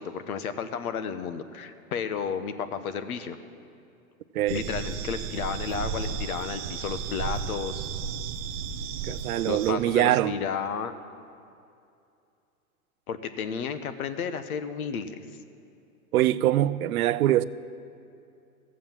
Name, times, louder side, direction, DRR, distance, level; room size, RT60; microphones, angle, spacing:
voice 1, 0.0-3.4 4.5-7.9 9.5-10.9 13.1-15.1, left 6 dB, 80° left, 1.1 m, -32 dB
sound 1, 4.5-9.7, right 7 dB, 30° right, 0.4 m, -34 dB
voice 2, 9.0-10.4 16.1-17.4, right 13 dB, 80° right, 0.6 m, -23 dB
14.5 x 7.5 x 7.4 m
hypercardioid pair, 140°, 43 cm